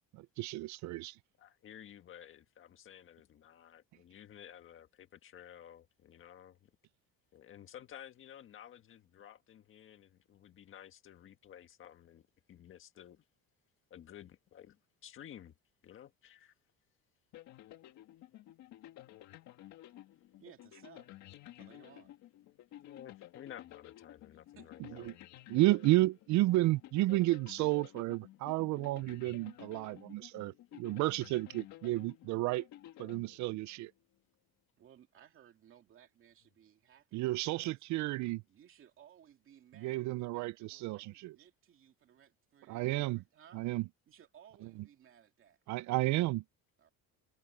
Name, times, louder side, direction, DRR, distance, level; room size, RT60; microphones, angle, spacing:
voice 1, 0.1-1.2 25.1-25.2 25.5-32.7 33.0-33.9 37.1-38.4 39.8-41.4 42.7-43.2 43.5-43.8 45.7-46.4, right 18 dB, 60° right, 0.5 m, -32 dB
voice 2, 1.4-6.7 7.3-13.2 13.9-15.5 15.8-16.5 22.8-25.1, left 10 dB, 40° left, 1.6 m, -53 dB
sound 1, 17.3-33.9, left 14 dB, 55° left, 1.9 m, -54 dB
voice 3, 20.4-21.1 21.6-22.1 24.5-24.7 34.8-37.8 38.5-43.6 44.1-45.6 46.8-46.9, right 9 dB, 40° right, 2.6 m, -61 dB
cardioid pair, 175°, 33 cm